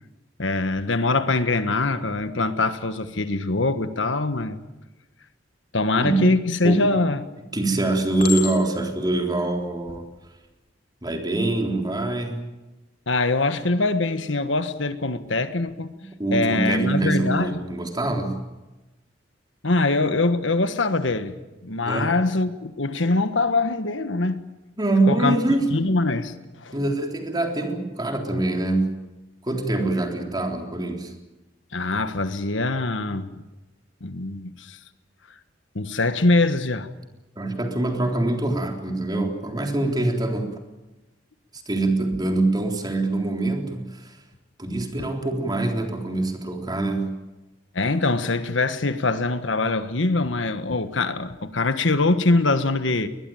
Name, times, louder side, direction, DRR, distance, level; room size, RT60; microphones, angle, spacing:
voice 1, 0.4-4.6 5.7-7.2 13.1-15.9 16.3-17.5 19.6-21.3 21.6-24.5 25.1-25.4 25.7-26.3 26.6-26.7 31.7-33.3 34.0-34.8 35.7-36.9 44.7-44.8 47.7-53.1, left 2 dB, 80° left, 1.5 m, -23 dB
voice 2, 6.0-7.0 7.5-10.1 11.0-12.4 15.9-18.4 21.9-22.1 24.8-25.7 26.7-29.0 29.4-31.1 37.4-40.5 41.5-44.2 44.6-47.2, right 2 dB, 20° right, 3.8 m, -24 dB
Chink clink, 6.7-7.2 8.2-9.0 9.7-10.0, left 8 dB, 50° left, 3.6 m, -32 dB
22.0 x 21.0 x 9.3 m
head